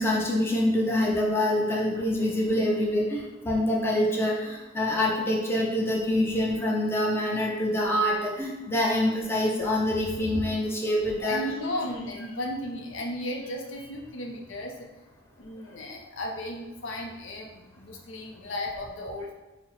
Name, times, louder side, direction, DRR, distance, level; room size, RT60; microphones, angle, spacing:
voice 1, 0.0-11.4, left 1 dB, 10° left, -3 dB, 0.5 m, -25 dB
voice 2, 11.2-14.9 15.4-19.3, left 1 dB, 75° left, 2 dB, 0.6 m, -35 dB
4.3 x 2.0 x 4.0 m, 1.1 s
head